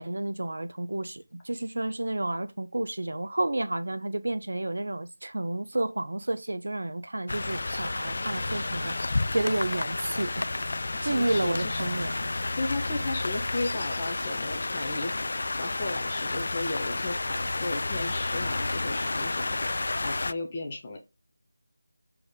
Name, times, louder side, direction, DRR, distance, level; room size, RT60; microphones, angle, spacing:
voice 1, 0.0-8.9 9.3-10.5 11.0-12.1, right 1 dB, 85° right, 1.1 m, -30 dB
sound 1, 7.3-20.3, left 2 dB, 45° left, 0.4 m, -31 dB
voice 2, 11.0-11.9 12.6-21.0, left 2 dB, 15° left, 1.2 m, -35 dB
7.0 x 4.9 x 3.8 m
figure-of-eight pair, 180°, 0 cm